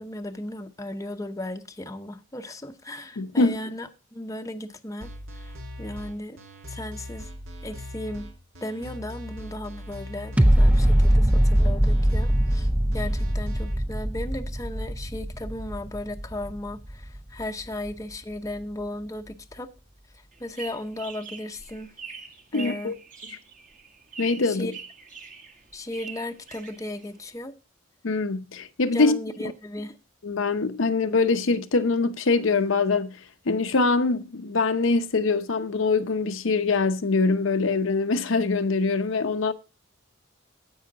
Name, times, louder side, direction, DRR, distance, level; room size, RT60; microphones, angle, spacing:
voice 1, 0.0-5.1 5.4-5.5 5.8-6.4 6.7-7.3 7.6-8.3 8.6-12.7 12.9-19.7 20.4-21.9 22.5-22.9 24.4-24.7 25.7-27.5 28.9-29.9, left 1 dB, 15° left, 0.7 m, -35 dB
voice 2, 3.2-3.6 22.5-23.0 23.3-23.4 24.2-24.7 28.0-29.2 30.2-33.2 33.5-39.5, left 3 dB, 65° left, 0.7 m, -23 dB
sound 1, 5.0-13.7, left 1 dB, 70° right, 2.0 m, -40 dB
sound 2, 10.4-17.4 17.9-18.0, equal, 5° right, 0.4 m, -22 dB
sound 3, 20.3-27.3, right 5 dB, 40° right, 1.7 m, -43 dB
15.5 x 5.6 x 3.9 m
head